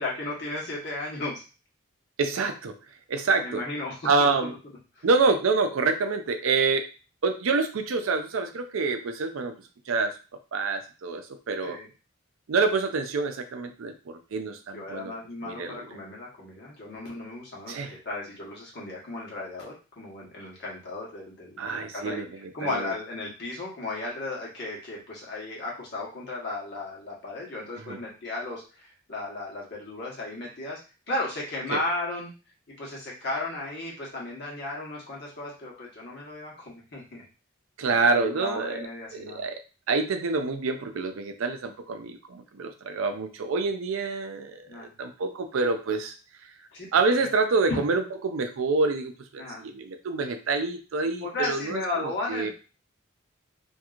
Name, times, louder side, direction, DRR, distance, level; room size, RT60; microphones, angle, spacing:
voice 1, 0.0-1.4 3.4-4.3 4.9-5.0 11.6-11.9 14.7-30.8 31.1-32.3 32.8-37.2 37.8-39.4 44.6-44.9 46.7-46.9 47.1-47.3 47.7-47.8 49.4-49.6 51.2-52.5, left 2 dB, 55° left, -3 dB, 1.1 m, -35 dB
voice 2, 2.2-2.8 3.1-3.6 4.0-4.5 5.0-6.9 7.2-9.5 9.9-10.1 10.5-11.8 12.5-15.1 15.4-15.9 17.7-17.9 21.6-22.3 22.6-22.9 27.9-28.0 31.7-31.8 37.8-39.6 39.9-46.1 46.9-52.5, right 4 dB, 85° right, 7 dB, 0.5 m, -27 dB
2.9 x 2.6 x 2.4 m, 0.33 s
head